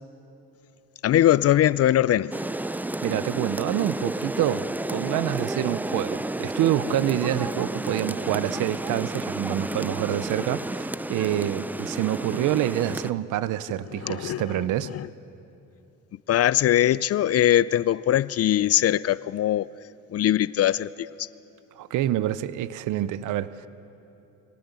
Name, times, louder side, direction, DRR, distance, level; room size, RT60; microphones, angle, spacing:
voice 1, 1.0-2.3 14.0-14.4 14.9-15.1 16.3-19.7 20.1-21.1, left 12 dB, 55° left, 0.4 m, -21 dB
Rain, 2.3-13.1, right 1 dB, 5° right, 0.4 m, -31 dB
voice 2, 3.0-14.9 21.7-23.7, right 12 dB, 80° right, 0.7 m, -27 dB
23.0 x 18.0 x 8.2 m
cardioid pair, 90°, 30 cm